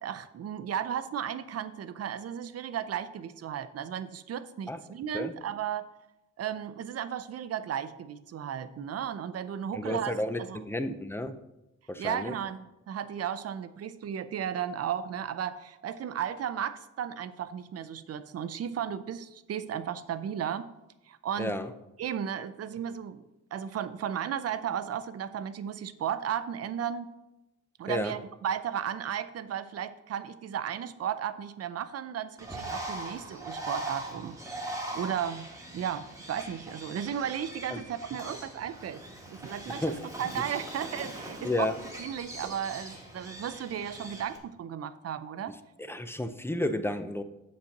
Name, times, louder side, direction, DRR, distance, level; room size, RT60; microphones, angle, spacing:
voice 1, 0.0-5.9 6.4-10.1 10.4-10.6 12.0-20.7 21.1-21.5 22.0-23.2 23.5-27.1 27.8-34.6 34.9-39.0 39.3-41.7 42.0-45.5, right 9 dB, 55° right, 13 dB, 0.5 m, -34 dB
voice 2, 9.7-11.4 11.9-12.4 21.4-21.7 27.9-28.1 37.7-37.8 39.8-40.0 41.4-41.8 45.9-47.2, left 1 dB, 10° left, 10 dB, 0.4 m, -31 dB
Bird, 32.4-44.4, right 1 dB, 10° right, 1.2 m, -41 dB
8.3 x 4.3 x 6.5 m, 0.94 s
wide cardioid pair, 165°, 31 cm